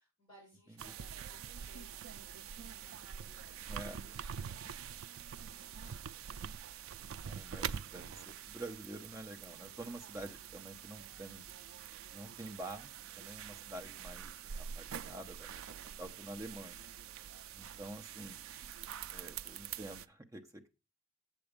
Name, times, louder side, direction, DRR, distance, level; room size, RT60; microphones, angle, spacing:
voice 1, 0.0-1.4 1.7-6.0 18.9-19.4, equal, 20° left, -4 dB, 6.3 m, -64 dB
sound 1, 0.8-20.1, right 8 dB, 65° right, 0.4 m, -46 dB
voice 2, 3.7-4.0 5.8-6.0 7.2-11.4 12.1-16.8 17.5-18.4 19.1-20.7, right 1 dB, 15° right, 5 dB, 0.8 m, -48 dB
7.7 x 7.0 x 5.1 m, 0.30 s
head